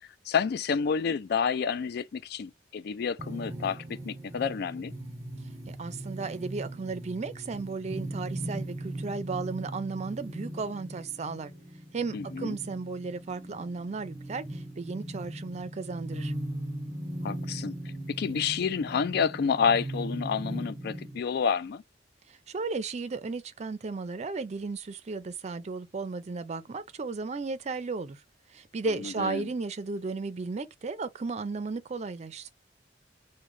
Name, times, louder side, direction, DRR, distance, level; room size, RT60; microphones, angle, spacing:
voice 1, 0.3-4.9 12.1-12.6 17.2-17.7 18.1-21.8 29.0-29.5, left 6 dB, 60° left, 0.3 m, -29 dB
sound 1, 3.2-21.2, right 1 dB, 15° right, 0.9 m, -39 dB
voice 2, 5.7-11.5 11.9-16.3 22.3-28.2 28.5-32.5, right 4 dB, 40° right, 0.4 m, -35 dB
3.6 x 2.2 x 3.1 m
head